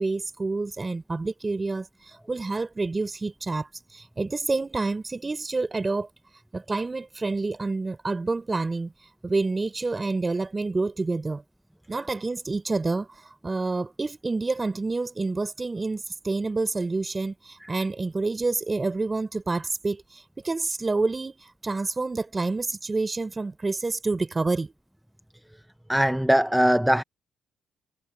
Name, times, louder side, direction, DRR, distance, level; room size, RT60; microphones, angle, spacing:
voice 1, 0.0-1.9 2.3-3.7 3.9-6.1 6.5-8.9 9.2-11.4 11.9-13.1 13.4-24.7, right 3 dB, 25° right, 4.3 m, -28 dB
voice 2, 25.9-27.0, equal, 5° right, 0.7 m, -21 dB
cardioid pair, 90°, 0 cm